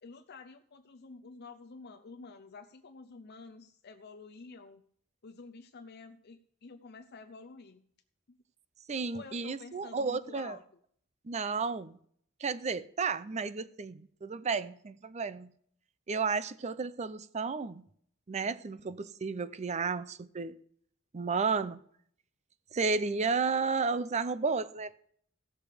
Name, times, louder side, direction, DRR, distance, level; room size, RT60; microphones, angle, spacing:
voice 1, 0.0-4.8 5.2-7.8 8.3-8.4 9.1-10.6, left 4 dB, 55° left, 0.6 m, -50 dB
voice 2, 8.9-10.6 11.2-12.0 12.4-15.5 16.1-17.8 18.3-20.6 21.1-21.8 22.7-25.0, right 4 dB, 35° right, 0.5 m, -32 dB
15.5 x 6.5 x 5.0 m
head